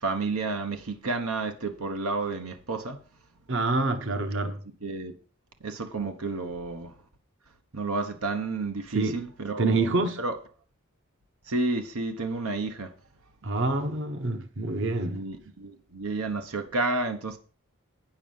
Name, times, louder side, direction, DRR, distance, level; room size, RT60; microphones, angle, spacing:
voice 1, 0.0-3.0 4.8-5.2 5.6-6.9 7.7-9.9 10.2-10.4 11.5-12.9 15.1-17.4, right 3 dB, 90° right, 1.2 m, -31 dB
voice 2, 3.5-4.6 8.9-9.2 9.6-10.2 13.4-15.2, right 3 dB, 60° right, 1.2 m, -27 dB
9.1 x 7.1 x 5.5 m
head